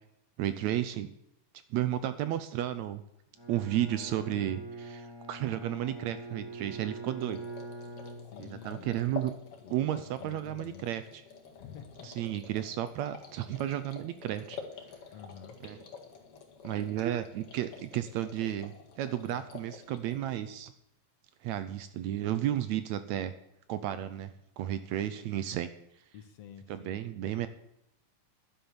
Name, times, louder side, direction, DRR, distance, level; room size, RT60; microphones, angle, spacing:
voice 1, 0.4-1.1 1.7-3.0 3.5-7.4 8.4-9.3 9.7-11.2 12.0-14.6 15.6-15.8 16.6-20.7 21.4-23.3 23.7-25.7 26.7-27.5, right 12 dB, 75° right, 12 dB, 1.7 m, -33 dB
Bowed string instrument, 3.4-8.8, right 2 dB, 10° right, 1.4 m, -43 dB
sound 1, 7.2-20.4, left 6 dB, 50° left, 2.5 m, -48 dB
voice 2, 8.3-9.1 9.6-10.9 11.6-12.1 15.1-15.6 26.1-27.0, left 8 dB, 65° left, 8 dB, 1.8 m, -49 dB
11.5 x 9.4 x 7.0 m, 0.80 s
omnidirectional pair, 3.6 m